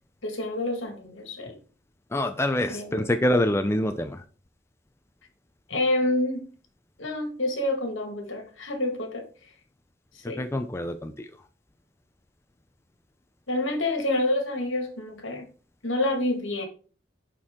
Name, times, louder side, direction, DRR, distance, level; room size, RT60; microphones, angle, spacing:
voice 1, 0.2-1.6 2.7-3.0 5.7-6.4 7.0-9.3 10.3-10.4 13.5-15.5 15.8-16.7, left 1 dB, 75° left, 1.8 m, -28 dB
voice 2, 2.1-4.2 10.2-11.3, left 1 dB, 15° left, 0.4 m, -26 dB
10.5 x 4.4 x 3.6 m
head